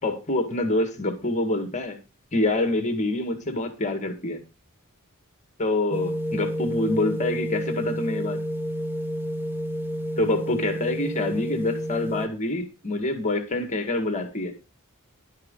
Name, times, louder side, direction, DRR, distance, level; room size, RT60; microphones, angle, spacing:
voice 1, 0.0-2.0 2.3-4.4 5.6-8.4 10.2-14.6, left 2 dB, 35° left, 1.9 m, -26 dB
sound 1, 5.9-12.3, equal, 10° right, 0.8 m, -30 dB
11.5 x 10.5 x 3.9 m
head